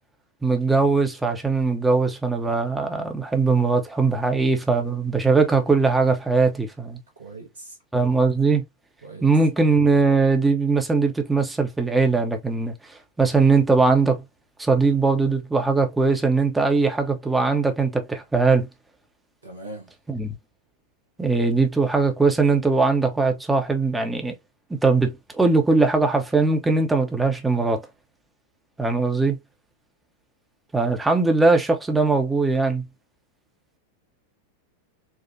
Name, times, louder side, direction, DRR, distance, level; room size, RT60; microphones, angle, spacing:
voice 1, 0.4-7.0 7.9-8.6 9.2-12.7 13.2-14.2 14.6-18.7 20.1-20.4 21.2-24.3 24.7-27.8 28.8-29.4 30.7-32.9, right 4 dB, 10° right, 0.8 m, -20 dB
voice 2, 7.2-7.8 9.0-9.3 19.4-19.9, right 2 dB, 75° right, 1.2 m, -40 dB
4.5 x 2.3 x 2.6 m
figure-of-eight pair, 90°, 0 cm